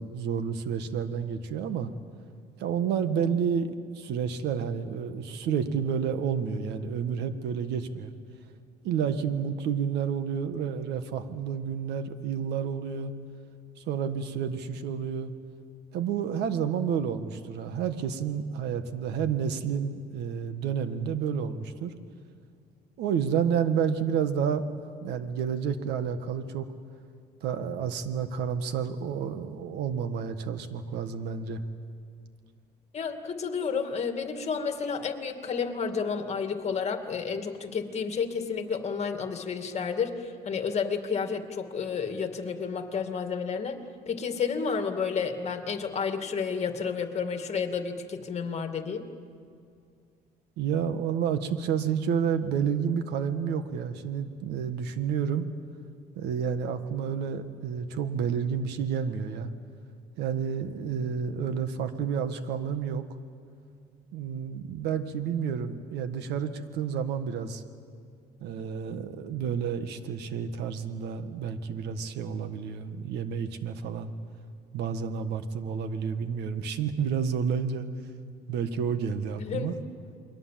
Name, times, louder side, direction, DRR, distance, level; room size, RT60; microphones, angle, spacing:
voice 1, 0.0-1.9 2.6-8.1 8.8-13.1 13.8-15.3 15.9-21.9 23.0-26.7 27.4-31.6 50.6-55.5 56.2-59.5 60.2-63.0 64.1-67.6 68.4-74.1 74.7-77.9 78.5-79.7, right 7 dB, 80° right, 10 dB, 1.6 m, -30 dB
voice 2, 32.9-49.1 79.4-79.7, left 6 dB, 40° left, 6 dB, 2.3 m, -31 dB
29.0 x 22.0 x 7.6 m, 2.2 s
cardioid pair, 110°, 17 cm